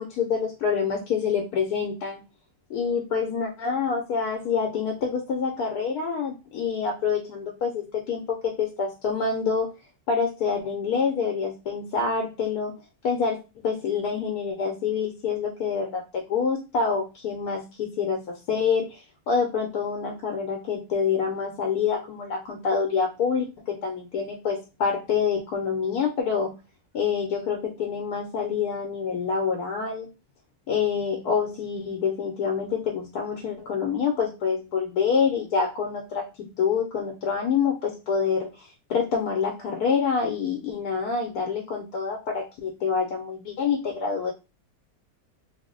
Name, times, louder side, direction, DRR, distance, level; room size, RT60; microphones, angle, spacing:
voice 1, 0.0-2.2 2.7-9.7 10.1-12.7 13.0-26.5 26.9-30.1 30.7-44.3, left 6 dB, 85° left, 2 dB, 1.1 m, -27 dB
2.9 x 2.0 x 3.7 m, 0.28 s
omnidirectional pair, 1.6 m